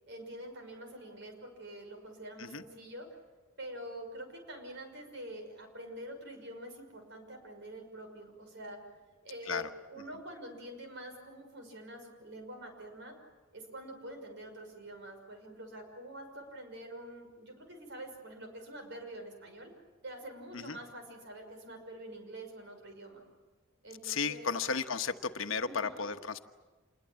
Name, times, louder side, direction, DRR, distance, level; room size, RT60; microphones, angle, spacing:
voice 1, 0.1-3.1 3.6-8.8 9.2-13.1 13.5-19.7 20.0-23.2 23.8-24.5 25.6-26.1, right 1 dB, 60° right, 4 dB, 6.0 m, -46 dB
voice 2, 24.0-26.5, left 5 dB, 70° left, 8 dB, 1.2 m, -34 dB
27.5 x 21.5 x 8.9 m, 1.3 s
head